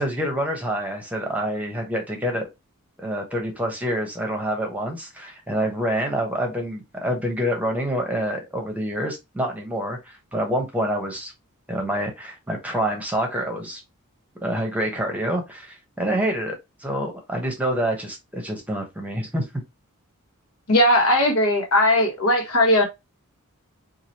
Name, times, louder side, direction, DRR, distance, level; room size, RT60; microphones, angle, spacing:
voice 1, 0.0-2.5 3.0-11.3 11.7-13.8 14.4-16.6 16.8-19.4, equal, 5° right, 0.9 m, -27 dB
voice 2, 20.7-22.8, left 1 dB, 75° left, 1.4 m, -18 dB
4.7 x 2.5 x 2.9 m
head